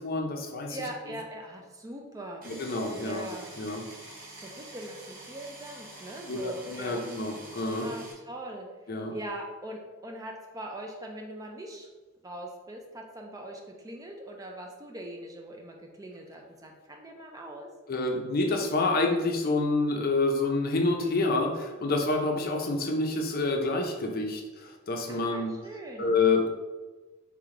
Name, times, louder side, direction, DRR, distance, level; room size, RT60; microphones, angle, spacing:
voice 1, 0.0-0.8 2.4-3.2 3.6-3.8 6.3-7.9 8.9-9.1 17.9-25.5 26.0-26.5, left 3 dB, 45° left, 2 dB, 0.5 m, -28 dB
voice 2, 0.7-2.4 3.0-3.5 4.4-7.0 7.7-8.7 9.1-11.9 12.2-17.7 25.1-26.1, right 1 dB, 15° right, 1 dB, 0.4 m, -41 dB
sound 1, 2.4-8.1, right 2 dB, 40° right, 0.9 m, -47 dB
3.4 x 3.2 x 3.7 m, 1.2 s
head